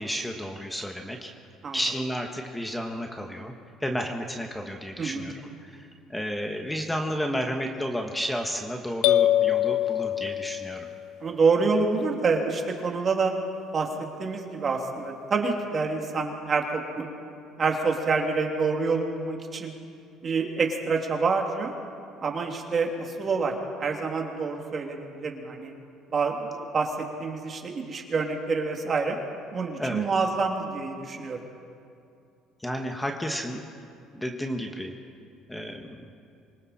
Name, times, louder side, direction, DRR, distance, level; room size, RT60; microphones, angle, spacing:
voice 1, 0.0-1.3 1.7-3.5 3.8-10.9 29.8-30.0 32.6-33.6 34.1-34.9 35.5-36.0, equal, 5° left, 3 dB, 1.5 m, -32 dB
voice 2, 5.0-5.3 11.2-13.3 13.7-13.9 14.2-17.2 17.6-19.7 20.2-21.7 22.2-25.7 26.1-26.9 27.2-29.2 29.5-31.4, right 4 dB, 35° right, 1 dB, 2.7 m, -27 dB
sound 1, 9.0-10.9, left 12 dB, 75° left, 0.7 m, -23 dB
26.5 x 24.0 x 4.3 m, 2.5 s
cardioid pair, 115°, 0 cm